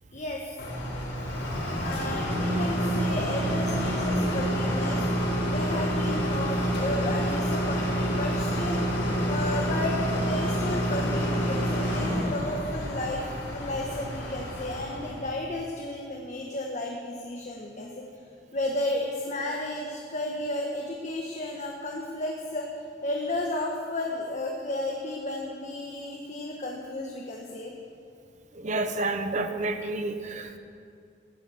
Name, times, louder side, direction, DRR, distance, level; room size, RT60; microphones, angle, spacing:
voice 1, 0.1-0.5 1.8-5.0 5.5-8.8 9.3-17.9 18.5-22.7 23.0-27.7, left 1 dB, 45° left, 0 dB, 1.3 m, -33 dB
sound 1, 0.6-15.3, equal, 85° left, 4.3 m, -28 dB
voice 2, 28.6-30.6, right 2 dB, 45° right, 7 dB, 1.0 m, -30 dB
15.0 x 11.0 x 7.1 m, 2.4 s
head